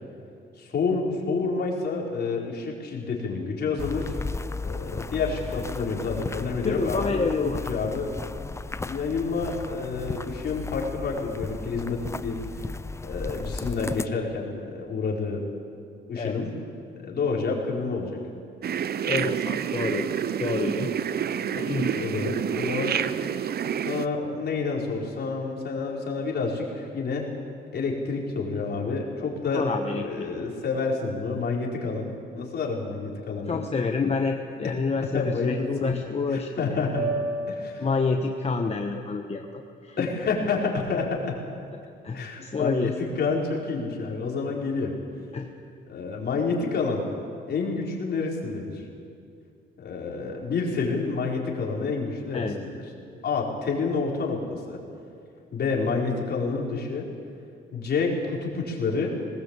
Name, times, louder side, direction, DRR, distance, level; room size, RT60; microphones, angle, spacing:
voice 1, 0.6-4.2 4.6-8.1 8.8-12.7 13.0-15.4 16.1-16.5 16.9-18.2 21.6-23.0 23.8-27.3 27.7-29.7 30.0-33.6 35.1-35.9 36.3-37.1 37.5-37.9 38.6-38.7 40.0-41.4 42.1-44.9 45.9-47.1 47.5-48.8 49.8-52.8 53.2-54.8 55.5-57.1 57.7-59.2, left 4 dB, 55° left, -2 dB, 4.6 m, -29 dB
sound 1, 3.8-14.1, left 3 dB, 15° left, 0.6 m, -35 dB
voice 2, 6.6-7.6 16.2-16.4 19.0-20.1 20.4-20.9 21.5-21.9 29.5-30.2 33.5-36.9 37.8-40.1 42.0-42.9 45.3-45.5 52.3-52.6, left 4 dB, 30° left, 3 dB, 1.3 m, -28 dB
sound 2, 18.6-24.1, right 8 dB, 55° right, 0.8 m, -28 dB
sound 3, 36.9-41.2, right 2 dB, 90° right, 7.9 m, -36 dB
19.5 x 19.0 x 8.3 m, 2.5 s
cardioid pair, 90°, 20 cm